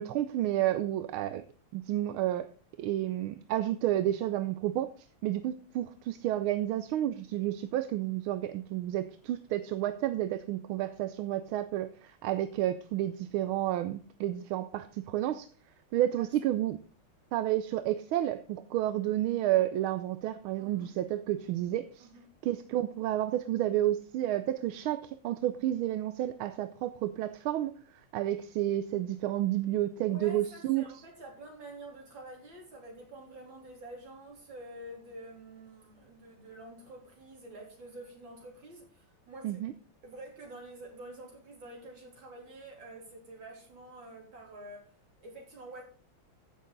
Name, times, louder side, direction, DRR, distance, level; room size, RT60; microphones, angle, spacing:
voice 1, 0.0-1.4 1.7-2.5 2.8-4.9 5.2-15.5 15.9-16.8 17.3-22.1 22.4-27.7 28.1-30.9 39.4-39.7, right 13 dB, 80° right, 12 dB, 1.4 m, -31 dB
voice 2, 20.6-20.9 22.0-22.2 30.1-39.6 40.0-44.9 45.2-45.8, right 1 dB, 60° right, 0 dB, 4.1 m, -48 dB
15.5 x 6.6 x 3.9 m, 0.40 s
omnidirectional pair, 2.3 m